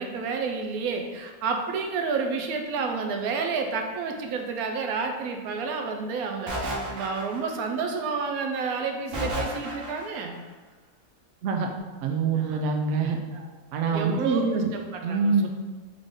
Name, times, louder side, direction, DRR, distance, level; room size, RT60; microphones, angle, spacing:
voice 1, 0.0-10.4 12.3-12.6 13.3-13.5 13.9-15.5, right 4 dB, 90° right, 3 dB, 1.1 m, -30 dB
sound 1, 6.5-7.7 9.1-10.2, right 1 dB, 50° right, 1.2 m, -32 dB
voice 2, 12.0-13.2 13.7-14.7 15.0-15.5, right 4 dB, 65° right, 3 dB, 0.8 m, -25 dB
3.7 x 3.5 x 3.6 m, 1.3 s
omnidirectional pair, 1.5 m